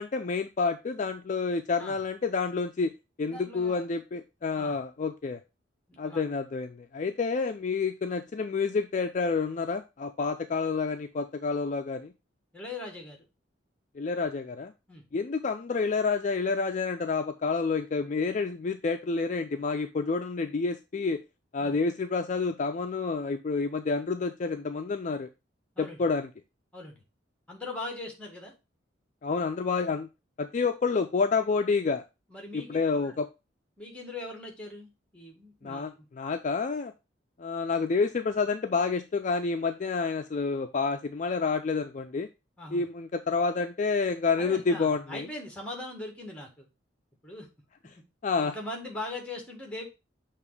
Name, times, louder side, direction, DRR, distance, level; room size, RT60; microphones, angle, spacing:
voice 1, 0.0-2.9 3.2-5.4 6.0-12.1 14.0-14.7 15.1-21.2 21.5-25.3 25.8-26.3 29.2-30.1 30.4-32.0 32.5-33.3 35.6-36.9 37.4-42.3 42.7-45.3 48.2-48.5, left 4 dB, 40° left, 7 dB, 0.4 m, -29 dB
voice 2, 3.2-3.8 4.6-4.8 5.9-6.2 12.5-13.2 14.9-15.0 21.6-21.8 25.7-26.0 26.7-27.0 27.5-28.5 32.3-32.7 33.0-33.2 33.8-36.1 42.6-42.9 44.4-46.7 47.2-47.5 48.4-49.9, left 2 dB, 5° left, 2 dB, 1.8 m, -40 dB
6.7 x 3.0 x 4.8 m, 0.26 s
head